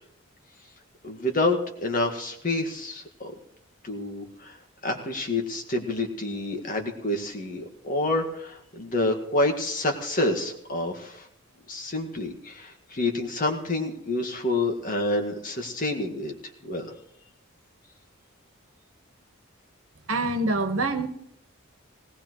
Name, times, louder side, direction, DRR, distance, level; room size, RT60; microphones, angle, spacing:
voice 1, 1.0-3.3 3.8-4.6 4.8-11.3 11.7-16.3 16.6-17.0, left 2 dB, 40° left, 3 dB, 1.8 m, -28 dB
voice 2, 20.1-21.1, right 2 dB, 80° right, 8 dB, 1.4 m, -25 dB
19.0 x 18.5 x 3.1 m, 0.69 s
head